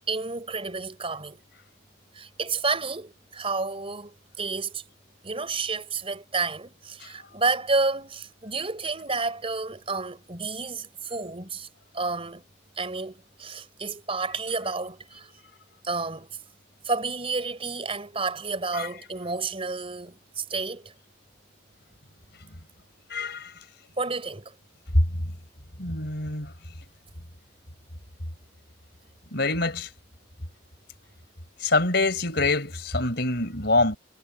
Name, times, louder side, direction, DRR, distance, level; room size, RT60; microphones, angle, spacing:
voice 1, 0.1-1.4 2.1-4.8 5.2-11.7 11.9-12.4 12.8-15.3 15.8-16.4 16.8-20.9 24.0-24.5, right 3 dB, 30° right, 3.7 m, -30 dB
voice 2, 23.1-23.5 25.8-26.5 29.3-29.9 31.6-34.0, left 3 dB, 55° left, 4.7 m, -25 dB
head